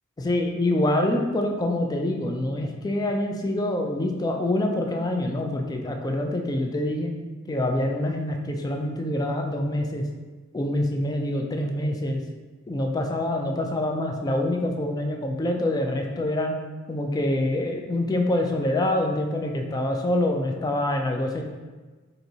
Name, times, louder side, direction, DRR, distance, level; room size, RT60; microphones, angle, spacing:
voice 1, 0.2-7.1 7.5-10.0 10.5-12.2 12.7-16.6 16.9-21.4, left 1 dB, 20° left, 3 dB, 0.3 m, -25 dB
4.1 x 2.6 x 2.7 m, 1.3 s
head